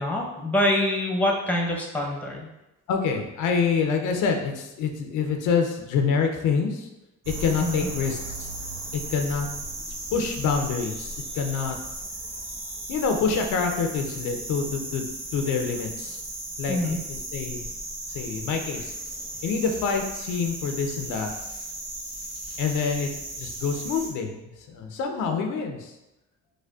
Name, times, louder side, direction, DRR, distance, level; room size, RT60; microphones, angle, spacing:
voice 1, 0.0-2.5 7.6-7.9 16.7-17.0, left 1 dB, 5° left, -1 dB, 0.7 m, -25 dB
voice 2, 2.9-6.9 7.3-8.5 8.9-9.5 10.1-11.8 12.9-15.1 15.3-16.2 16.6-17.6 18.1-18.9 19.4-21.3 22.6-23.1 23.4-25.9, left 5 dB, 85° left, 4 dB, 0.5 m, -26 dB
sound 1, 7.2-24.1, right 1 dB, 55° right, 0.9 m, -36 dB
4.9 x 2.1 x 2.3 m, 0.95 s
cardioid pair, 90°, 30 cm